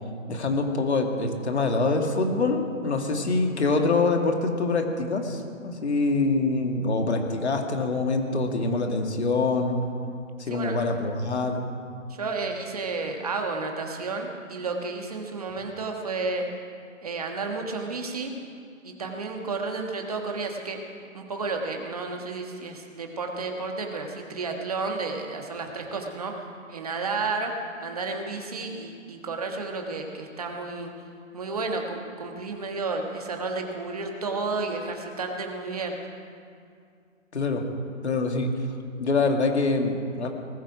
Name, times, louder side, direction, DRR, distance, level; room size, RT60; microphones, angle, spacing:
voice 1, 0.3-9.8 10.4-11.7 37.3-37.6 38.0-38.5 39.0-40.3, left 3 dB, 55° left, 3 dB, 2.3 m, -25 dB
voice 2, 10.4-10.8 12.1-16.5 17.0-18.3 18.8-20.8 21.1-27.5 27.8-30.9 31.3-36.0, right 3 dB, 30° right, 2 dB, 1.5 m, -32 dB
19.5 x 14.0 x 4.9 m, 2.3 s
hypercardioid pair, 180°, 40 cm